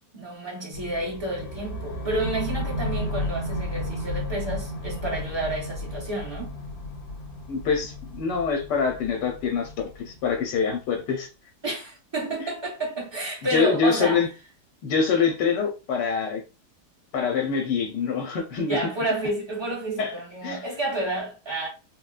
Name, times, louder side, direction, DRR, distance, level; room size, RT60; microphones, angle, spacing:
voice 1, 0.1-6.5 11.6-14.2 18.7-21.7, right 2 dB, 20° right, 0.8 m, -30 dB
sound 1, 0.7-10.8, left 1 dB, 60° left, 0.8 m, -33 dB
voice 2, 7.5-11.3 13.5-14.3 14.8-16.4 17.1-18.8 20.0-20.1 20.4-20.6, left 5 dB, 90° left, 1.3 m, -25 dB
3.3 x 2.1 x 2.3 m
omnidirectional pair, 1.8 m